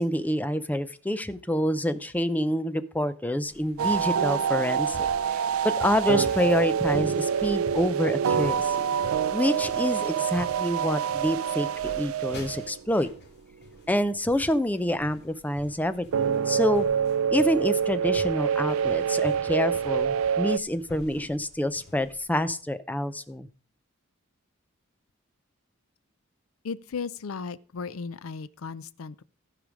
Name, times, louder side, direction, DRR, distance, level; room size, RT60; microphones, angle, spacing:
voice 1, 0.0-5.1 5.6-8.8 9.3-11.7 11.9-13.1 13.9-16.9 17.3-23.5, left 1 dB, 10° left, 0.5 m, -27 dB
sound 1, 3.4-22.2, left 2 dB, 55° left, 2.2 m, -48 dB
sound 2, 3.8-13.0 16.1-20.6, right 7 dB, 80° right, 0.4 m, -26 dB
voice 2, 26.6-29.2, left 5 dB, 75° left, 0.5 m, -36 dB
14.5 x 5.0 x 5.1 m
head